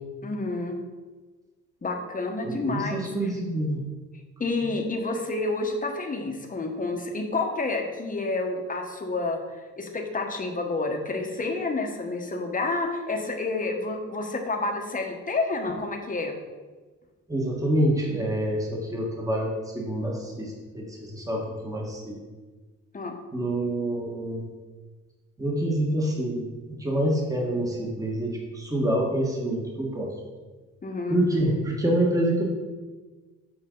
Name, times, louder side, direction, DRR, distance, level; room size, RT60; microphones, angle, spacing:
voice 1, 0.2-0.8 1.8-3.0 4.4-9.4 9.8-16.4 22.9-23.2 30.8-31.2, left 3 dB, 25° left, 3 dB, 1.2 m, -29 dB
voice 2, 2.4-3.8 17.3-22.2 23.3-24.5 25.4-30.1 31.1-32.4, right 1 dB, 10° right, -2 dB, 1.5 m, -27 dB
7.7 x 5.2 x 3.9 m, 1.3 s
cardioid pair, 90°, 30 cm